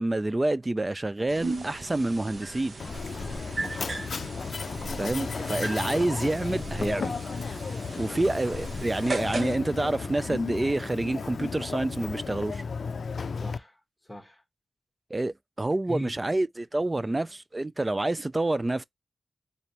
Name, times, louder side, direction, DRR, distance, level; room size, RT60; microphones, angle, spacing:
voice 1, 0.0-2.8 5.0-7.2 8.0-12.6 15.1-18.8, right 2 dB, 25° right, 0.3 m, -28 dB
sound 1, 1.3-9.6, right 2 dB, 55° right, 0.9 m, -37 dB
Mechanisms, 2.8-13.6, left 5 dB, 70° left, 0.4 m, -34 dB
voice 2, 3.6-4.3 7.9-8.2 13.4-13.8 14.1-14.4 15.9-16.2 17.0-17.2, equal, 5° left, 1.3 m, -40 dB
3.9 x 3.2 x 2.8 m
wide cardioid pair, 85°, 0 cm